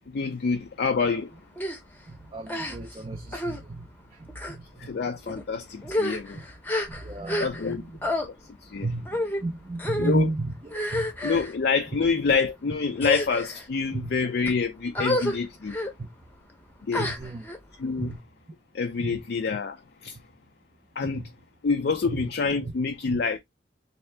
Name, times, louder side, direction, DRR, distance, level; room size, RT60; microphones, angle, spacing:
voice 1, 0.1-1.3 4.8-6.4 7.4-7.8 8.6-8.9 10.0-10.3 11.2-15.8 16.9-17.1 17.8-18.1 18.7-20.2 21.0-21.2 21.6-23.4, left 5 dB, 60° left, 0.4 m, -27 dB
sound 1, 1.6-1.8 2.5-3.0 3.3-3.6 4.3-4.6 5.3-5.4 5.8-7.7 8.0-8.3 9.1-9.4 9.8-10.2 10.7-11.5 12.2-12.5 12.9-13.6 14.2-14.5 14.9-15.4 15.7-15.9 16.9-17.6, left 1 dB, 10° left, 0.7 m, -29 dB
voice 2, 2.1-4.9 6.3-6.5 6.9-8.0 8.8-11.1 13.9-14.1 16.0-16.1 17.0-17.4 18.0-18.2 19.0-19.2 21.1-21.3 22.0-22.3 22.6-22.7 23.1-23.2, right 2 dB, 30° right, 0.4 m, -33 dB
3.3 x 2.7 x 3.2 m
head